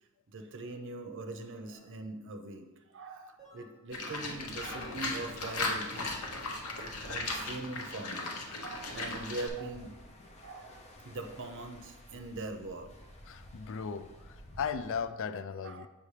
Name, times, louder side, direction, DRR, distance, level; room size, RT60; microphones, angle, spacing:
voice 1, 0.3-2.7 2.9-6.1 6.7-8.3 8.6-10.0 10.4-12.9 13.3-13.4 15.6-15.9, right 2 dB, 60° right, 5 dB, 0.7 m, -42 dB
sound 1, 1.7-1.9 3.4-3.8 5.2-5.6 7.1-7.5 8.9-9.2, right 2 dB, ahead, 2.2 m, -55 dB
Livestock farm animals working animals, 3.9-9.5, left 2 dB, 90° left, 1.0 m, -37 dB
sound 2, 4.4-15.0, equal, 30° left, 0.7 m, -54 dB
voice 2, 13.3-15.9, left 6 dB, 60° left, 12 dB, 0.4 m, -37 dB
7.0 x 5.8 x 3.2 m, 1.1 s
head